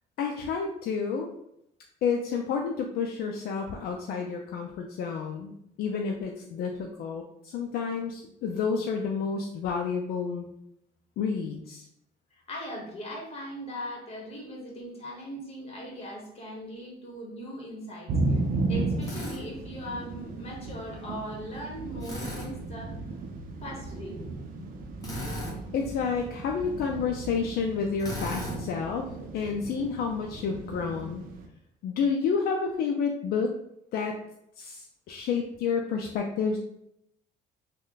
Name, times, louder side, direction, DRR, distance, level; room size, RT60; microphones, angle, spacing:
voice 1, 0.2-1.3 2.0-10.4 11.2-11.9 25.7-29.0 29.3-31.2 31.8-33.5 33.9-34.2 34.6-36.6, left 5 dB, 70° left, 2 dB, 0.4 m, -30 dB
voice 2, 12.3-22.9 23.6-24.2, equal, 35° left, -1 dB, 1.3 m, -40 dB
sound 1, 18.1-31.5, right 2 dB, 55° right, 0.5 m, -35 dB
Drill, 19.0-19.4 22.0-22.5 25.0-25.6 28.0-28.6, left 1 dB, 20° left, 1.2 m, -36 dB
3.1 x 2.2 x 3.9 m, 0.76 s
cardioid pair, 110°, 17 cm